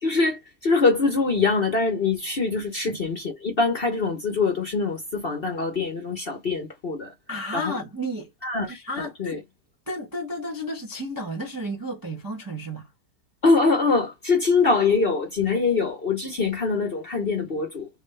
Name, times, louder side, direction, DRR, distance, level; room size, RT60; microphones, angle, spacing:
voice 1, 0.0-7.1 7.5-7.7 8.4-8.7 9.0-9.4 13.4-17.9, left 4 dB, 45° left, 0.9 m, -23 dB
voice 2, 7.3-8.3 8.7-9.4 9.9-12.9, equal, 20° right, 0.6 m, -32 dB
3.5 x 2.7 x 3.3 m
omnidirectional pair, 1.9 m